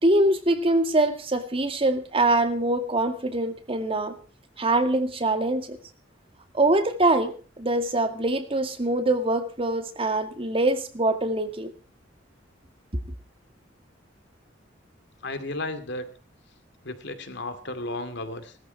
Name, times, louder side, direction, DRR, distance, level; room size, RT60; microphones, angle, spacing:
voice 1, 0.0-4.2 4.6-5.8 6.5-11.7, right 2 dB, 30° right, 7 dB, 2.1 m, -24 dB
voice 2, 15.2-16.1 16.8-18.6, left 2 dB, 65° left, 9 dB, 2.6 m, -33 dB
19.0 x 14.0 x 4.7 m, 0.38 s
head